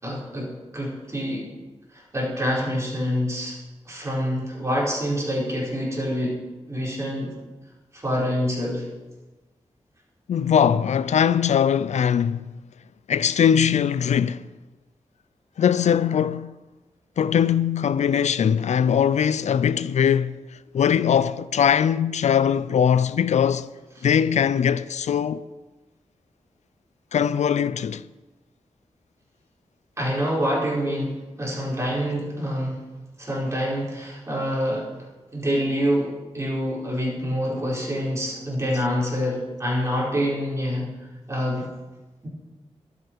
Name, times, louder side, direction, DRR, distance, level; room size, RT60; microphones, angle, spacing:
voice 1, 0.0-1.5 1.9-3.6 3.8-6.4 6.7-7.3 7.9-8.8 24.0-24.1 30.0-32.8 33.2-34.9 35.3-40.9 41.3-41.7 42.2-42.3, equal, 25° right, 4.6 m, -26 dB
voice 2, 10.3-12.4 13.1-14.4 15.6-16.5 17.2-20.3 20.7-23.7 24.0-25.4 27.1-28.0, left 8 dB, 85° left, 0.4 m, -21 dB
23.0 x 8.0 x 4.7 m
wide cardioid pair, 170°, 12 cm